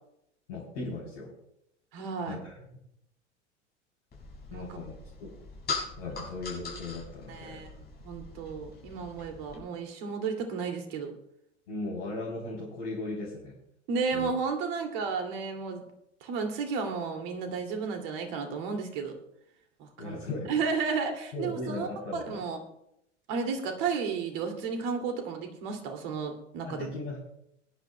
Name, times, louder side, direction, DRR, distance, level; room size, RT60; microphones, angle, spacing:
voice 1, 0.5-1.3 2.3-2.6 4.5-4.9 5.2-5.3 6.0-7.7 11.7-13.5 14.1-14.3 20.0-20.5 21.3-22.4 26.6-27.2, left 2 dB, 65° left, -4 dB, 3.6 m, -37 dB
voice 2, 1.9-2.4 4.5-4.7 7.3-11.1 13.9-15.8 16.2-19.1 19.8-20.2 20.5-22.6 23.3-26.9, right 5 dB, 55° right, 4 dB, 2.5 m, -33 dB
sound 1, 4.1-9.6, left 4 dB, 25° left, 5.4 m, -41 dB
22.0 x 10.5 x 2.2 m, 0.78 s
figure-of-eight pair, 85°, 36 cm